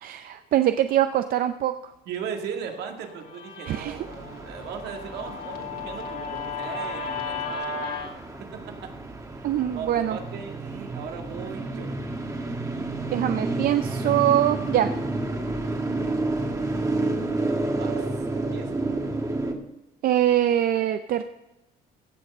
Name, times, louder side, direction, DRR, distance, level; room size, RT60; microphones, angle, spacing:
voice 1, 0.0-1.7 3.7-4.0 9.4-10.2 13.1-14.9 20.0-21.2, right 11 dB, 60° right, 9 dB, 0.6 m, -23 dB
voice 2, 2.1-8.0 8.5-8.9 9.7-11.9 15.6-15.9 17.8-18.0 18.3-18.8, right 7 dB, 75° right, 3 dB, 2.0 m, -38 dB
Guitar, 2.6-8.1, left 4 dB, 60° left, 2.5 m, -35 dB
sound 1, 3.7-19.5, right 2 dB, 20° right, 1.4 m, -30 dB
16.0 x 6.5 x 5.5 m, 1.0 s
cardioid pair, 110°, 17 cm